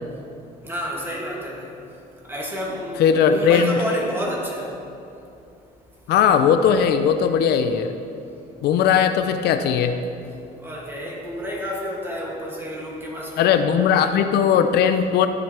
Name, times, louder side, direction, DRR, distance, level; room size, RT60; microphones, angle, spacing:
voice 1, 0.6-1.7 2.3-4.7 10.6-14.2, equal, 15° right, -4 dB, 2.3 m, -30 dB
voice 2, 3.0-3.8 6.1-7.9 8.6-10.0 13.4-15.3, left 7 dB, 70° left, 8 dB, 0.5 m, -18 dB
14.0 x 6.9 x 3.4 m, 2.6 s
cardioid pair, 110°, 17 cm